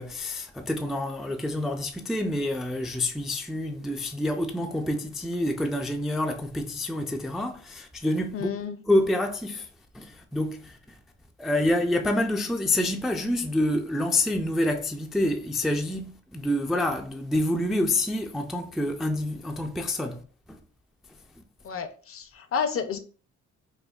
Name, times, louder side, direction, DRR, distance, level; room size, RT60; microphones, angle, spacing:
voice 1, 0.0-8.5 8.9-9.7 9.9-10.8 11.4-20.2 20.5-20.6, left 1 dB, ahead, 0.3 m, -27 dB
voice 2, 8.3-8.8 21.6-23.0, left 6 dB, 50° left, 0.6 m, -30 dB
4.8 x 2.2 x 2.4 m
cardioid pair, 90°, 30 cm